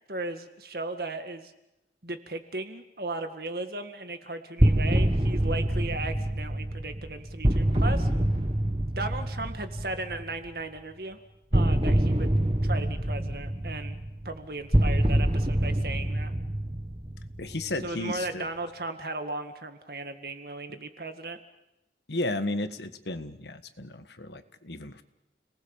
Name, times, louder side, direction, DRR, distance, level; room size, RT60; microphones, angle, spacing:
voice 1, 0.1-1.5 2.0-8.1 9.0-11.2 11.5-14.0 14.2-16.3 17.8-21.4, right 2 dB, 55° right, 7 dB, 2.0 m, -36 dB
sound 1, 4.6-10.3 11.5-17.8, right 1 dB, 30° right, 1.5 m, -26 dB
voice 2, 17.4-18.5 22.1-25.0, left 2 dB, 75° left, 10 dB, 1.5 m, -33 dB
30.0 x 19.5 x 7.3 m, 0.91 s
head